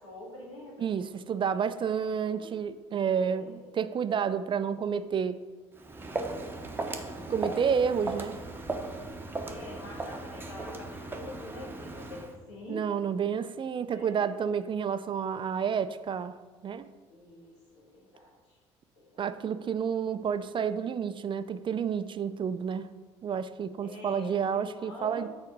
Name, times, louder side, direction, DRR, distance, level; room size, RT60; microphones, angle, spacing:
voice 1, 0.0-1.0 1.5-2.5 3.1-3.6 9.4-12.8 13.2-13.4 13.8-14.5 17.1-18.6 19.0-19.2 23.8-25.3, left 2 dB, 90° left, -4 dB, 1.8 m, -46 dB
voice 2, 0.8-5.4 7.3-8.4 12.7-16.4 16.6-16.9 19.2-22.9 23.2-25.3, right 7 dB, 35° right, 12 dB, 0.4 m, -30 dB
Walk footsteps, 5.7-12.3, right 2 dB, 15° right, 0.9 m, -37 dB
6.5 x 4.1 x 5.2 m, 1.4 s
hypercardioid pair, 60°, 15 cm